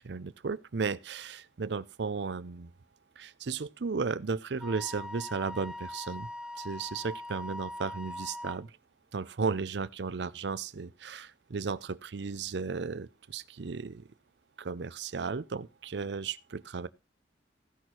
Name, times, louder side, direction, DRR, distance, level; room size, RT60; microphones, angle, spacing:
voice 1, 0.0-2.7 3.2-6.3 6.6-8.7 9.1-14.1 14.6-16.9, right 4 dB, 65° right, 0.6 m, -35 dB
Wind instrument woodwind instrument, 4.6-8.6, left 1 dB, 5° right, 0.7 m, -41 dB
16.0 x 6.3 x 4.4 m
head